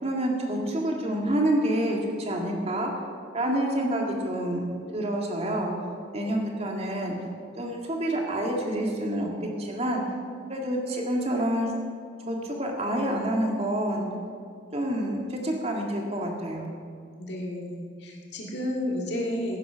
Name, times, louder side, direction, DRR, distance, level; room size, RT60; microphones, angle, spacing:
voice 1, 0.0-2.9 3.3-5.7 6.1-7.2 7.6-9.3 9.6-10.0 10.5-11.7 12.3-14.1 14.7-16.7, right 1 dB, 35° right, 0 dB, 2.1 m, -28 dB
voice 2, 17.2-19.6, left 1 dB, 65° left, -1 dB, 2.1 m, -31 dB
15.5 x 10.0 x 5.8 m, 2.2 s
head